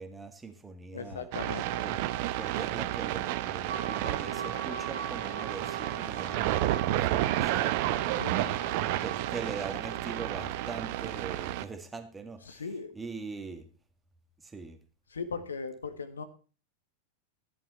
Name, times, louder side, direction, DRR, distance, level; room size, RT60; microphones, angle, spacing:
voice 1, 0.0-1.3 1.8-2.0 2.4-12.6 12.9-13.7 14.4-14.8, right 4 dB, 10° right, 1.9 m, -42 dB
voice 2, 0.9-1.8 8.1-8.6 12.4-12.9 15.1-16.2, left 5 dB, 70° left, 1.5 m, -38 dB
sound 1, 1.3-11.6, right 14 dB, 45° right, 0.9 m, -31 dB
sound 2, 3.7-10.5, right 6 dB, 65° right, 1.7 m, -42 dB
14.5 x 10.5 x 4.3 m
figure-of-eight pair, 90°, 0 cm